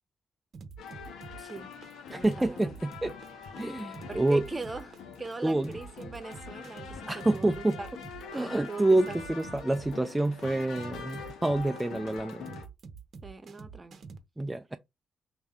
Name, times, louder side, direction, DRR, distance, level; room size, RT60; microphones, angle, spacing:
sound 1, 0.5-14.2, right 5 dB, 60° right, 0.7 m, -46 dB
sound 2, 0.8-12.7, left 6 dB, 85° left, 0.8 m, -44 dB
voice 1, 1.4-1.7 2.1-2.7 4.1-7.9 8.7-9.2 11.9-12.0 13.2-14.0, right 3 dB, 30° right, 0.8 m, -41 dB
voice 2, 2.1-3.2 3.6-4.5 5.4-5.8 7.1-7.8 8.3-12.5 14.4-14.8, right 2 dB, 15° right, 0.4 m, -27 dB
3.5 x 2.7 x 3.4 m
cardioid pair, 70°, 0 cm